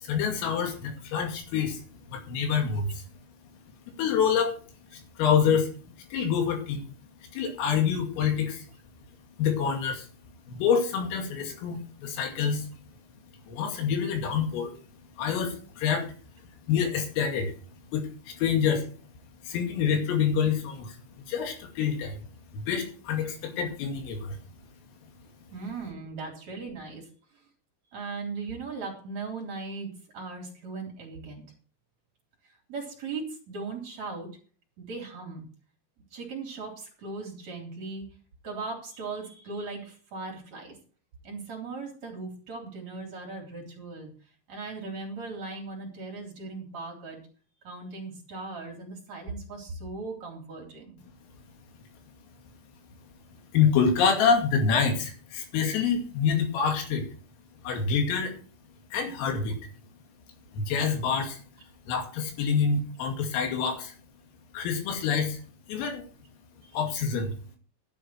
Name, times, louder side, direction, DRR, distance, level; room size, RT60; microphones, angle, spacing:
voice 1, 0.0-1.8 2.1-3.0 3.9-4.5 4.9-5.7 6.1-6.9 7.3-8.7 9.4-10.1 10.5-12.7 13.5-14.7 15.2-16.1 16.7-17.5 17.9-18.8 19.4-21.0 21.3-22.2 22.5-24.4 53.5-57.1 57.6-58.3 58.9-59.6 60.5-61.4 61.9-63.9 64.5-65.4 65.7-66.0 66.7-67.3, left 6 dB, 90° left, 4 dB, 5.0 m, -26 dB
voice 2, 25.5-27.4 27.9-31.4 32.4-34.3 34.8-35.5 36.1-38.1 38.4-40.8 41.2-44.1 44.5-47.2 47.6-51.0 66.6-66.8, right 3 dB, 40° right, 0 dB, 4.1 m, -38 dB
13.0 x 10.5 x 4.6 m, 0.41 s
omnidirectional pair, 5.8 m